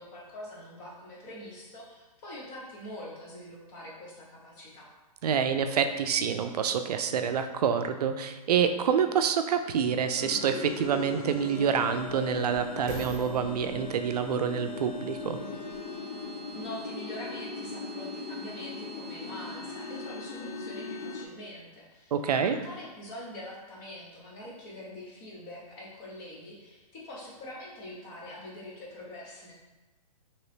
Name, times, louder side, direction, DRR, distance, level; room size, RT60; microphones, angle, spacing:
voice 1, 0.0-4.9 16.5-29.5, left 1 dB, 15° left, -4 dB, 0.6 m, -44 dB
voice 2, 5.2-15.4 22.1-22.6, right 7 dB, 75° right, 8 dB, 0.4 m, -27 dB
sound 1, 10.2-21.3, left 3 dB, 70° left, 0.5 m, -39 dB
sound 2, 12.8-16.0 16.6-16.7, right 3 dB, 35° right, 0.9 m, -46 dB
2.9 x 2.8 x 3.2 m, 1.1 s
hypercardioid pair, 165°, 20 cm